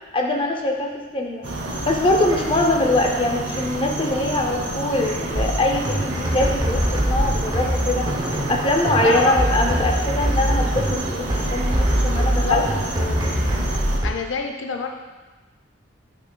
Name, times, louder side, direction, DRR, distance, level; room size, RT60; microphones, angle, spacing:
voice 1, 0.1-1.4 1.9-8.1 8.5-13.3, left 1 dB, 25° left, 1 dB, 0.6 m, -23 dB
sound 1, 1.4-14.0, right 1 dB, 65° right, 0.8 m, -29 dB
sound 2, 5.4-14.1, equal, 20° right, 0.6 m, -23 dB
voice 2, 9.0-9.4 12.2-12.7 14.0-14.9, left 6 dB, 75° left, 4 dB, 0.5 m, -25 dB
8.1 x 5.6 x 2.2 m, 1.2 s
head